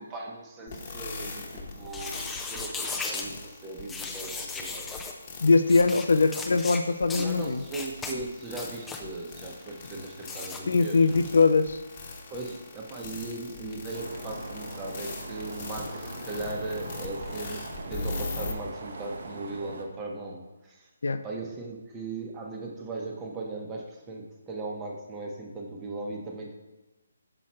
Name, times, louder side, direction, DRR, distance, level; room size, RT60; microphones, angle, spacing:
voice 1, 0.0-4.9 7.1-11.4 12.3-17.6 17.9-20.9 21.2-26.5, right 2 dB, 15° right, 0 dB, 0.9 m, -38 dB
sound 1, 0.7-18.5, left 3 dB, 35° left, 1.1 m, -41 dB
sound 2, 1.9-3.3 3.9-5.1 5.7-6.0 6.3-6.8 7.1-7.3 7.7-8.1 8.5-9.0 10.2-10.6, left 4 dB, 5° left, 0.5 m, -36 dB
voice 2, 5.4-7.6 10.7-11.8 21.0-21.2, left 4 dB, 75° left, 11 dB, 0.4 m, -22 dB
sound 3, 13.9-19.9, right 3 dB, 60° right, 0.9 m, -41 dB
6.0 x 4.9 x 4.3 m, 1.1 s
hypercardioid pair, 160°, 0 cm